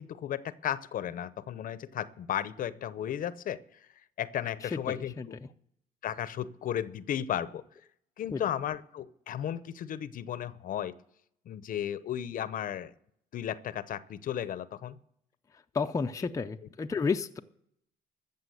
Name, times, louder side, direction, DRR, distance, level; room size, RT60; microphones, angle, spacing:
voice 1, 0.0-3.8 4.2-5.3 6.0-7.6 8.2-10.9 11.5-12.9 13.3-14.9, left 10 dB, 55° left, 15 dB, 0.8 m, -34 dB
voice 2, 4.6-5.3 8.3-8.4 15.7-17.4, left 5 dB, 20° left, 6 dB, 0.6 m, -31 dB
14.0 x 7.0 x 7.9 m, 0.71 s
cardioid pair, 110°, 17 cm